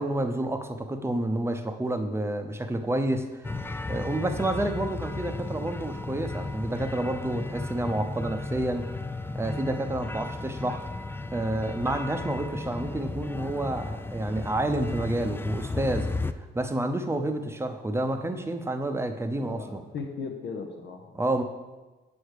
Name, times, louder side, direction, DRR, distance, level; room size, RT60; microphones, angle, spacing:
voice 1, 0.0-9.0 9.3-10.8 11.3-16.1 16.5-19.8 21.1-21.4, right 1 dB, 10° right, 7 dB, 0.7 m, -29 dB
sound 1, 3.4-16.3, left 3 dB, 10° left, 0.3 m, -35 dB
voice 2, 19.3-21.1, left 5 dB, 65° left, 4 dB, 1.0 m, -37 dB
7.1 x 5.0 x 6.5 m, 1.2 s
cardioid pair, 90°, 20 cm